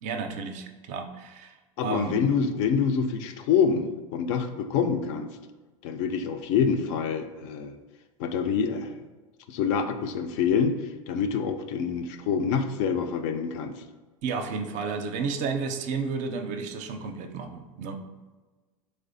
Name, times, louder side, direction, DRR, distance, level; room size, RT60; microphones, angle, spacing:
voice 1, 0.0-2.2 14.2-18.0, right 5 dB, 45° right, 6 dB, 0.4 m, -32 dB
voice 2, 1.8-5.4 5.8-7.8 8.2-8.9 9.5-10.8 11.1-13.8, left 6 dB, 60° left, 8 dB, 0.4 m, -26 dB
3.3 x 3.3 x 2.5 m, 1.3 s
hypercardioid pair, 95°, 17 cm